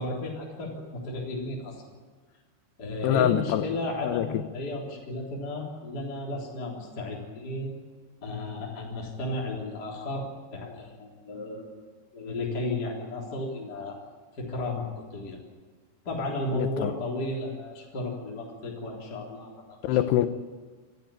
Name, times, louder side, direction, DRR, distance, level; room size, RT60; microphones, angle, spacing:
voice 1, 0.0-1.9 2.8-7.7 8.2-11.7 12.1-14.0 14.4-15.4 16.0-20.0, left 2 dB, 20° left, 3.7 m, -34 dB
voice 2, 3.0-3.6 4.0-4.4 16.5-16.9 19.8-20.3, left 12 dB, 80° left, 2.5 m, -25 dB
26.5 x 13.5 x 8.9 m
omnidirectional pair, 5.5 m